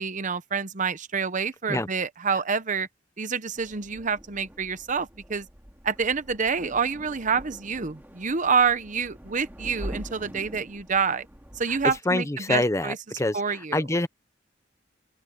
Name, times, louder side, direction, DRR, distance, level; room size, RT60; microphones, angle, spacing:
voice 1, 0.0-2.9 3.2-5.5 5.8-11.3 11.6-13.0 13.3-13.8, right 5 dB, 45° right, 0.9 m, -27 dB
sound 1, 3.5-12.0, equal, 10° right, 2.2 m, -44 dB
voice 2, 12.1-14.1, left 2 dB, 15° left, 0.8 m, -26 dB
open air
head